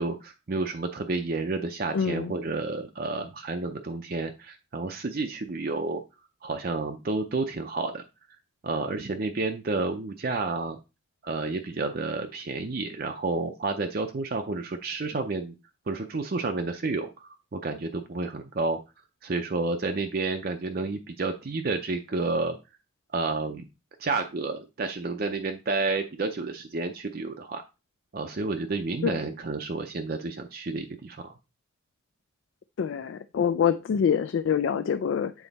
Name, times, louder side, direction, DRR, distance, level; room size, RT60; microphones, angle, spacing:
voice 1, 0.0-6.0 6.4-8.0 8.6-10.8 11.2-15.5 15.9-18.8 19.2-22.6 23.1-23.6 24.0-27.6 28.1-31.2, right 3 dB, 50° right, 5 dB, 0.5 m, -30 dB
voice 2, 1.9-2.3 29.0-29.2 32.8-35.3, left 7 dB, 70° left, 10 dB, 0.3 m, -25 dB
7.1 x 3.2 x 4.1 m, 0.27 s
head